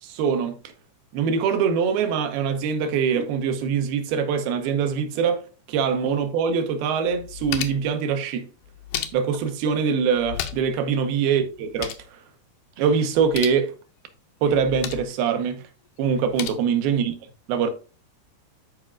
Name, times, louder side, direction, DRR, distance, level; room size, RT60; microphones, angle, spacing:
voice 1, 0.0-0.6 1.1-5.4 5.7-8.5 9.1-12.2 12.8-13.7 14.4-15.6 16.0-17.1 17.5-17.7, right 6 dB, 75° right, 2.8 m, -23 dB
sound 1, 6.5-6.6 7.1-8.0 8.6-9.5 10.1-10.8 11.1-11.2 11.5-12.1 13.1-13.6 14.5-15.1 16.1-16.5, left 11 dB, 90° left, 2.8 m, -34 dB
13.0 x 4.9 x 2.4 m
omnidirectional pair, 4.5 m